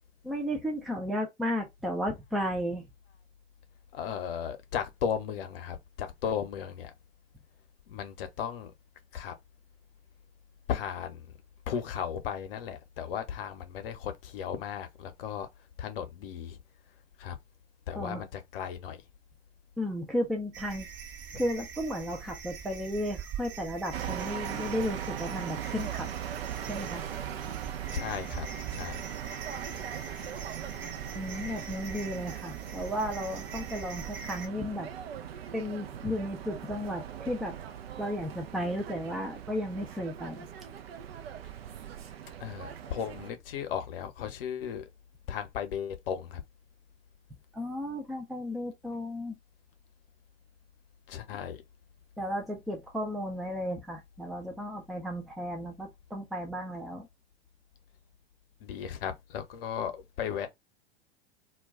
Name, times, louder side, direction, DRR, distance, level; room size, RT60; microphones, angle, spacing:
voice 1, 0.2-2.9 18.0-18.2 19.8-20.9 21.3-26.1 26.7-27.1 31.1-34.9 35.5-37.6 38.0-40.5 47.5-49.3 52.2-57.1, equal, ahead, 0.4 m, -34 dB
voice 2, 3.9-6.9 7.9-8.7 9.1-9.4 10.7-11.3 11.7-15.5 15.8-16.6 17.2-17.4 17.9-19.0 27.9-29.0 42.4-44.8 45.3-46.4 51.1-51.6 58.6-60.5, left 8 dB, 55° left, 0.8 m, -35 dB
sound 1, 20.5-34.5, right 7 dB, 35° right, 0.8 m, -43 dB
sound 2, 23.9-43.3, right 9 dB, 65° right, 0.5 m, -40 dB
2.3 x 2.2 x 3.5 m
figure-of-eight pair, 95°, 33 cm